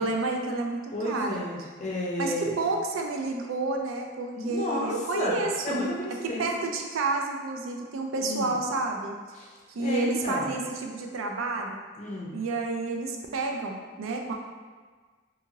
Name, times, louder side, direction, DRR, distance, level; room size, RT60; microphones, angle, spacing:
voice 1, 0.0-1.4 2.2-5.8 6.4-9.1 9.7-11.8 12.3-14.3, right 3 dB, 85° right, 2 dB, 0.4 m, -30 dB
voice 2, 0.9-2.5 4.3-6.5 8.2-8.5 9.4-9.5 9.8-10.6 12.0-12.3, left 1 dB, 35° left, -3 dB, 0.5 m, -32 dB
2.8 x 2.7 x 2.6 m, 1.5 s
head